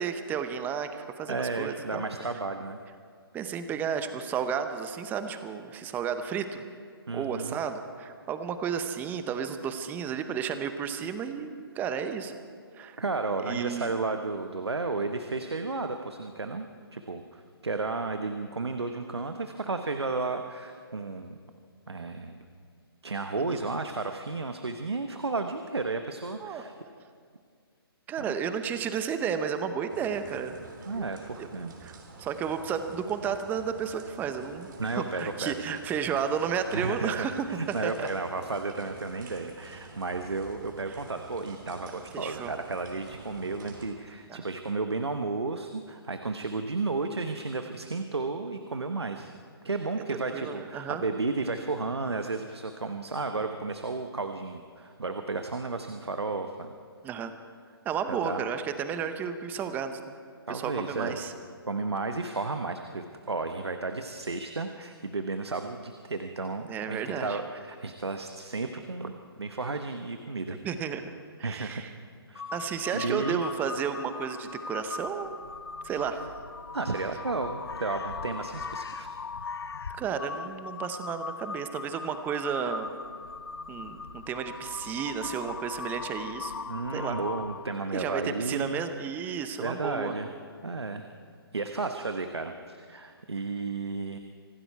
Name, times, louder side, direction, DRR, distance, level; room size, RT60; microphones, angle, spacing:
voice 1, 0.0-2.0 3.3-6.6 7.1-12.4 12.8-13.0 13.4-13.9 23.5-23.6 26.4-26.6 28.1-30.6 30.9-31.1 31.4-31.5 31.8-37.5 37.8-38.1 42.1-42.5 44.3-44.4 50.1-51.1 57.0-57.3 57.8-60.0 60.5-61.3 66.7-67.4 70.5-71.1 71.4-71.9 72.5-75.3 75.8-76.2 79.9-83.0 83.7-87.2 87.9-90.1, right 7 dB, 15° right, 9 dB, 0.8 m, -32 dB
voice 2, 1.3-2.8 7.1-7.6 13.0-16.7 16.9-21.3 21.9-22.4 23.0-26.7 28.2-28.3 30.9-31.7 34.8-35.6 36.7-49.3 49.6-56.7 58.1-58.4 60.5-61.2 61.7-70.6 71.4-71.8 72.3-72.4 72.9-73.4 76.7-79.1 86.7-88.8 89.6-90.3 90.6-91.1 91.5-94.2, right 3 dB, 90° right, 6 dB, 1.0 m, -33 dB
sound 1, 29.9-43.9, right 3 dB, 50° right, 3.0 m, -49 dB
Crow, 72.4-87.9, left 4 dB, 75° left, 0.8 m, -39 dB
25.0 x 12.0 x 4.7 m, 2.1 s
figure-of-eight pair, 140°, 13 cm